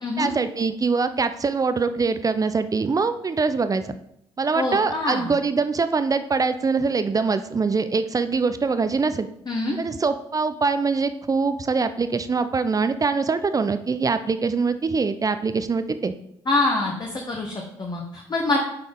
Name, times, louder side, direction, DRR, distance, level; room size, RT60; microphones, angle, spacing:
voice 1, 0.2-4.0 4.4-9.3 9.8-16.1, right 4 dB, 25° right, 11 dB, 0.5 m, -23 dB
voice 2, 4.5-5.3 9.5-9.8 16.5-18.6, left 2 dB, 30° left, 0 dB, 1.2 m, -25 dB
7.4 x 5.2 x 3.8 m, 0.76 s
figure-of-eight pair, 50°, 14 cm